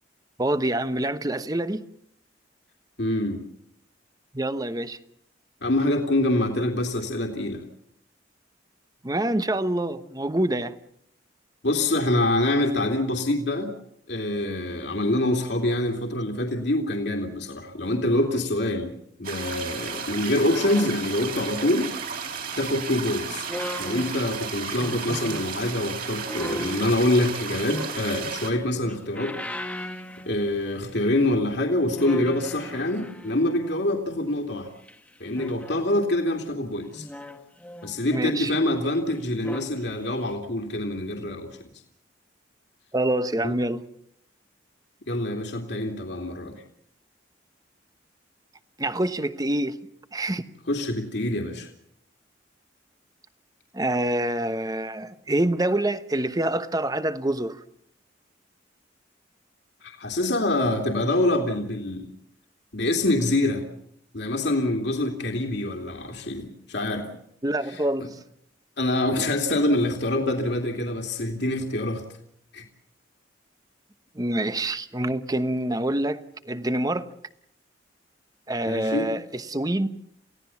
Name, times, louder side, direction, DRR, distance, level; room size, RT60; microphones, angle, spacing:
voice 1, 0.4-1.8 4.3-5.0 9.0-10.7 38.1-38.5 42.9-43.8 48.8-49.8 50.1-50.4 53.7-57.6 67.4-68.1 74.1-77.1 78.5-79.9, right 1 dB, 20° right, 1.0 m, -26 dB
voice 2, 3.0-3.4 5.6-7.6 11.6-13.7 14.1-18.9 19.2-21.9 22.6-23.4 23.8-29.4 29.8-29.9 30.3-34.7 35.2-37.1 37.8-41.5 43.4-43.5 45.1-46.6 50.7-51.7 59.8-62.1 62.7-63.6 64.1-67.1 68.8-72.0 72.5-72.6 78.6-79.1, left 1 dB, 60° left, 2.7 m, -25 dB
sound 1, 19.2-28.5, right 6 dB, 50° right, 3.8 m, -34 dB
sound 2, 20.5-22.3 23.3-25.5 26.3-28.3 28.8-30.8 31.1-31.3 32.0-34.0 34.9-36.2 36.9-38.9 39.3-39.7 40.2-40.3, left 1 dB, 5° left, 1.5 m, -38 dB
29.0 x 17.0 x 7.1 m
head